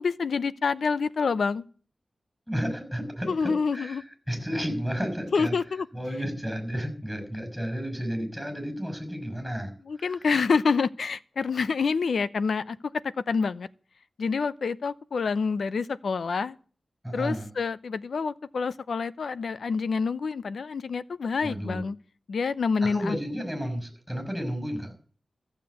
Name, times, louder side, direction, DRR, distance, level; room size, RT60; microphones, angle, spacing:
voice 1, 0.0-1.6 3.3-4.0 5.3-5.9 9.9-12.8 13.3-13.7 14.2-16.6 17.1-22.0 22.3-23.2, left 5 dB, 90° left, 0.7 m, -27 dB
voice 2, 2.5-5.5 5.9-9.7 10.0-10.1 17.0-17.5 21.4-21.8 22.8-24.9, equal, ahead, 5.7 m, -32 dB
14.5 x 7.4 x 8.0 m
wide cardioid pair, 110°, 0 cm